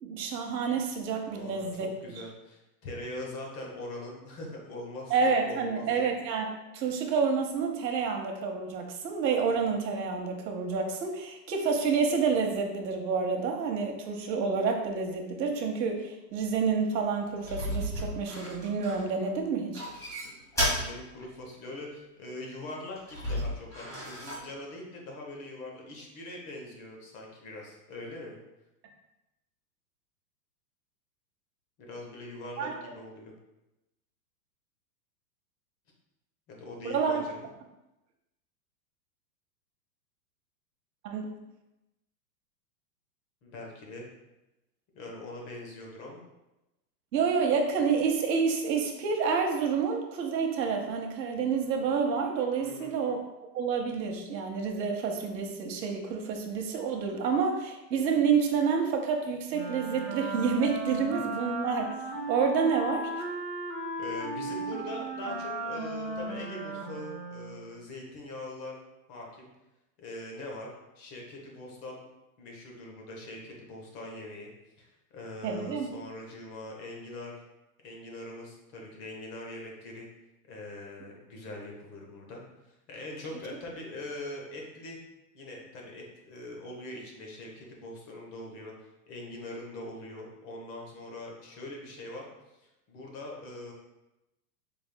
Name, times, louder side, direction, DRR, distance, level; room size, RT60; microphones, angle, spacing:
voice 1, 0.0-1.9 5.1-19.8 32.6-32.7 36.8-37.3 41.0-41.3 47.1-53.2 53.5-61.9 62.3-63.1 75.4-75.9, right 5 dB, 85° right, 2 dB, 0.9 m, -28 dB
voice 2, 1.2-1.7 2.0-6.0 20.6-28.3 31.8-33.3 36.5-37.5 43.4-44.1 44.9-46.2 52.6-52.9 64.0-68.8 69.1-69.5 70.0-72.0 72.4-74.5 74.8-77.4 77.8-80.0 80.5-82.4 82.9-85.0 85.3-88.7 89.1-92.3 92.9-93.7, left 2 dB, 30° left, -1 dB, 0.8 m, -42 dB
sound 1, 17.4-19.3 19.7-20.9 21.2-21.3 23.0-24.5, equal, 5° left, 1.2 m, -33 dB
Wind instrument woodwind instrument, 59.5-67.7, right 2 dB, 35° right, 0.7 m, -36 dB
5.0 x 3.4 x 2.2 m, 0.96 s
supercardioid pair, 145°, 50 cm